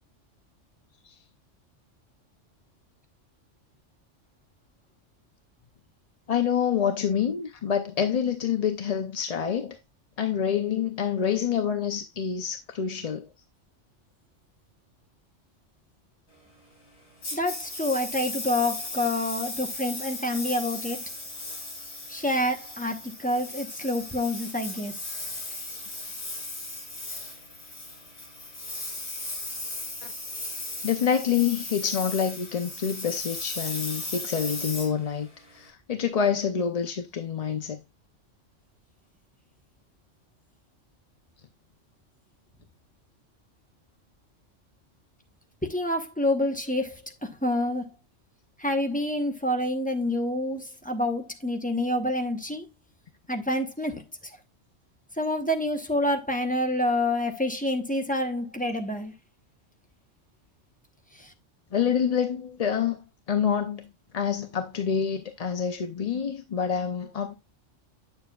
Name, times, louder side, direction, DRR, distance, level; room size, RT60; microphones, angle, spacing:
voice 1, 6.3-9.8 10.2-13.3 30.8-35.3 35.5-37.8 61.7-63.0 63.3-63.9 64.1-67.3, left 7 dB, 45° left, 0.5 m, -27 dB
Engine, 17.2-35.7, left 2 dB, 60° left, 3.1 m, -36 dB
voice 2, 17.3-21.0 22.1-24.9 45.7-47.9 48.6-52.6 53.3-54.0 55.2-59.1 61.2-61.3, left 1 dB, 10° left, 0.8 m, -27 dB
8.5 x 6.9 x 2.3 m
omnidirectional pair, 1.3 m